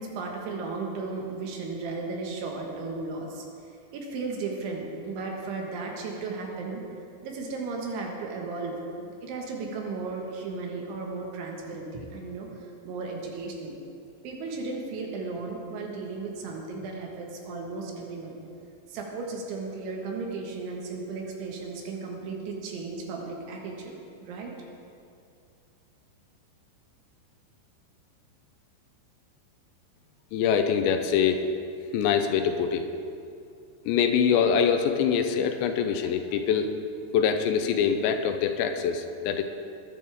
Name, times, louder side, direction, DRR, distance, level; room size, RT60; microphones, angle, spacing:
voice 1, 0.0-3.5 3.9-6.8 7.2-13.8 14.2-18.4 18.9-24.5, right 3 dB, 90° right, 0 dB, 4.1 m, -35 dB
voice 2, 30.3-31.4 31.9-32.9 33.9-36.7 37.1-39.4, left 7 dB, 90° left, 6 dB, 3.0 m, -24 dB
21.0 x 11.0 x 3.6 m, 2.4 s
omnidirectional pair, 5.2 m